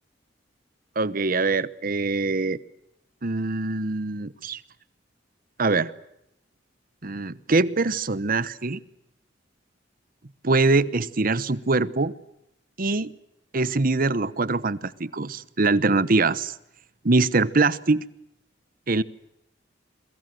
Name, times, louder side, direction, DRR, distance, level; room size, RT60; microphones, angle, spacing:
voice 1, 1.0-2.6 3.2-4.6 5.6-5.9 7.0-8.8 10.4-12.1 12.8-13.1 13.5-16.5 17.0-18.0 18.9-19.0, right 3 dB, 50° right, 1.0 m, -23 dB
30.0 x 23.0 x 7.8 m
head